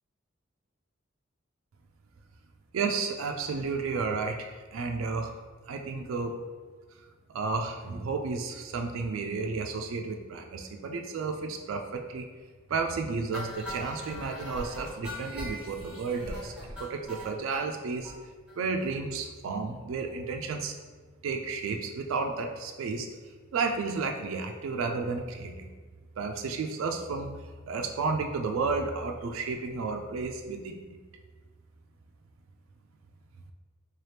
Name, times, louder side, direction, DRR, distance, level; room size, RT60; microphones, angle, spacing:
voice 1, 2.7-5.3 5.7-6.3 7.3-12.3 12.7-16.5 16.8-18.1 18.6-20.7 21.2-23.1 23.5-25.7 26.2-27.3 27.7-31.0, right 4 dB, 80° right, 4 dB, 0.3 m, -32 dB
sound 1, 13.3-17.6 18.0-18.2 18.5-18.6 18.8-18.9 19.2-19.3, equal, 5° right, 1.0 m, -40 dB
3.9 x 2.8 x 3.3 m, 1.5 s
head